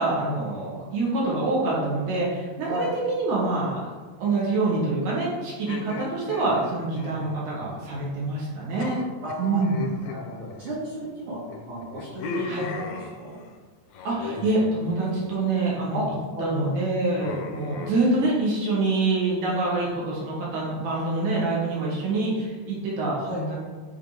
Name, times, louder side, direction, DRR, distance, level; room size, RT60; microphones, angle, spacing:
voice 1, 0.0-3.8 4.2-9.0 9.4-9.8 12.5-12.7 14.0-16.0 16.4-23.6, right 2 dB, 80° right, -5 dB, 3.2 m, -26 dB
sound 1, 5.7-8.1 8.3-8.5 8.8-11.1 11.5-13.5 13.9-14.6 14.9-15.4 15.8-16.2 17.2-17.9, left 4 dB, 75° left, 1.5 m, -38 dB
voice 2, 9.2-9.6 10.0-11.4 11.7-13.4 15.9-16.1 16.3-16.7 23.2-23.5, equal, 55° right, -6 dB, 1.7 m, -33 dB
8.4 x 3.4 x 4.6 m, 1.4 s
omnidirectional pair, 3.4 m